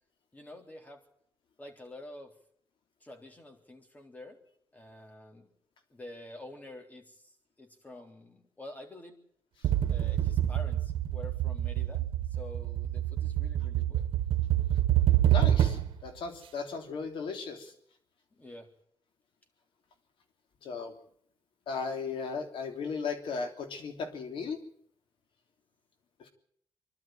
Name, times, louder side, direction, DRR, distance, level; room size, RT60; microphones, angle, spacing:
voice 1, 0.3-1.0 1.6-2.3 3.0-4.4 4.7-5.5 5.9-9.2 9.9-14.1 18.4-18.7, left 1 dB, 15° left, 4 dB, 3.6 m, -48 dB
sound 1, 9.6-16.0, right 12 dB, 85° right, 1.3 m, -27 dB
voice 2, 15.3-17.7 20.6-20.9 21.7-24.6 26.2-26.3, left 5 dB, 75° left, 5 dB, 3.3 m, -36 dB
24.5 x 12.0 x 9.2 m, 0.68 s
cardioid pair, 110°, 9 cm